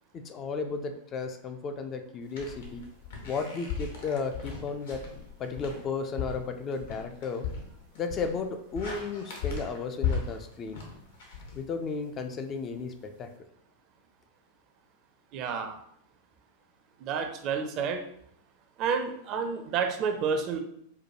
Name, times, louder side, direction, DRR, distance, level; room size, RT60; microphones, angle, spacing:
voice 1, 0.1-2.8 3.3-5.0 5.4-7.5 8.0-10.8 11.5-13.3, left 4 dB, 30° left, 6 dB, 0.4 m, -34 dB
sound 1, 2.3-12.2, left 6 dB, 60° left, 0.8 m, -37 dB
voice 2, 15.3-15.8 17.0-18.0 18.8-20.6, right 6 dB, 40° right, 6 dB, 0.5 m, -30 dB
4.5 x 2.2 x 2.9 m, 0.69 s
figure-of-eight pair, 90°, 0 cm